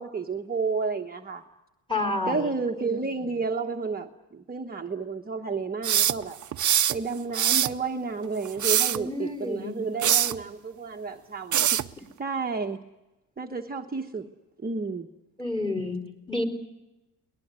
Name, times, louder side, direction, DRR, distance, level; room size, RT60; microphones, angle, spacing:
voice 1, 0.0-1.4 2.3-6.4 6.9-11.8 12.2-12.8 13.4-14.3 14.6-15.1, right 4 dB, 20° right, 3 dB, 1.2 m, -31 dB
voice 2, 1.9-2.5 8.9-9.8 15.4-16.4, left 2 dB, 10° left, 4 dB, 4.2 m, -30 dB
sound 1, 5.8-7.0 7.3-7.8 8.5-9.0 10.0-10.4 11.5-11.9, right 10 dB, 45° right, 0.8 m, -23 dB
22.0 x 20.0 x 9.6 m, 0.99 s
cardioid pair, 100°, 40 cm